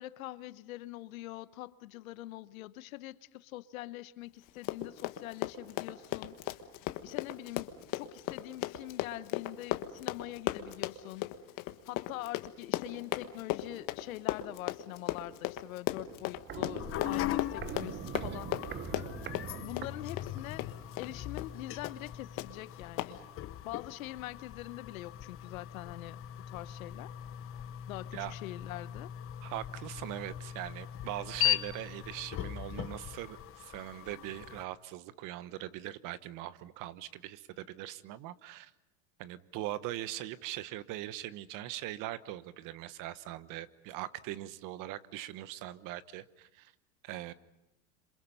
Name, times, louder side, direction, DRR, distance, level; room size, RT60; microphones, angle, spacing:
voice 1, 0.0-6.6 7.0-7.7 7.9-11.3 11.9-18.8 19.6-20.7 20.9-23.2 23.6-26.2 26.5-27.1 27.8-29.1, left 17 dB, 75° left, 1.0 m, -44 dB
Run, 4.5-21.1 21.4-21.5 21.8-22.1 22.4-22.5 23.0-23.1, left 15 dB, 50° left, 1.5 m, -36 dB
Walk footsteps, 15.9-20.6 20.9-21.0, right 8 dB, 25° right, 0.9 m, -43 dB
sound 1, 16.8-34.6, left 12 dB, 30° left, 0.9 m, -39 dB
voice 2, 29.4-38.7 39.2-46.7 47.0-47.3, right 14 dB, 50° right, 1.2 m, -41 dB
27.5 x 27.0 x 5.6 m
hypercardioid pair, 105°, 42 cm